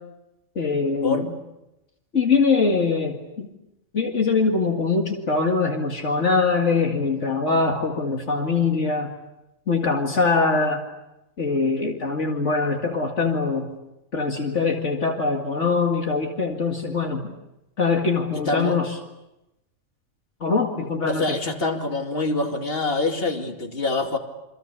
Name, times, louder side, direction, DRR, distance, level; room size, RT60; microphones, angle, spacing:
voice 1, 0.6-1.3 2.1-3.5 3.9-9.1 9.7-10.8 11.4-13.7 14.1-17.3 17.8-19.0 20.4-21.4, left 4 dB, 65° left, 2 dB, 2.4 m, -23 dB
voice 2, 18.5-18.8 21.1-24.2, left 3 dB, 50° left, 3 dB, 2.7 m, -25 dB
28.0 x 26.0 x 6.9 m, 0.94 s
omnidirectional pair, 1.3 m